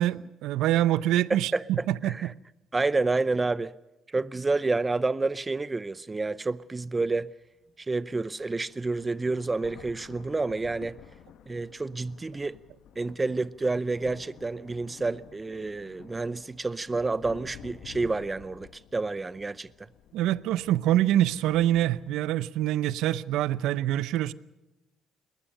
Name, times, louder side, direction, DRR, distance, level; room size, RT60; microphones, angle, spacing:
voice 1, 0.0-2.1 20.1-24.3, right 13 dB, 80° right, 0.6 m, -25 dB
voice 2, 1.3-2.3 2.7-3.7 4.1-7.3 7.8-11.0 11.5-12.6 13.0-19.7, right 3 dB, 25° right, 0.6 m, -29 dB
sound 1, 7.7-7.8 8.1-22.1, left 8 dB, 70° left, 1.3 m, -52 dB
21.0 x 20.0 x 6.7 m
supercardioid pair, 70°, 0 cm